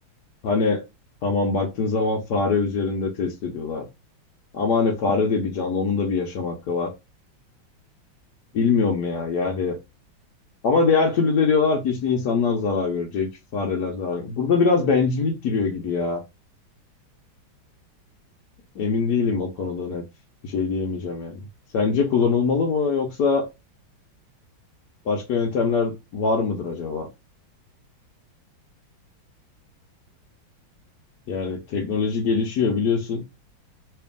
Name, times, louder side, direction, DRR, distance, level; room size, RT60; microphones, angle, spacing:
voice 1, 0.4-0.8 1.2-3.9 4.5-6.9 8.5-9.8 10.6-13.3 13.5-16.2 18.8-20.0 20.4-21.4 21.7-23.5 25.1-27.1 31.3-33.2, left 4 dB, 60° left, 1.1 m, -23 dB
3.4 x 2.9 x 3.5 m
omnidirectional pair, 2.2 m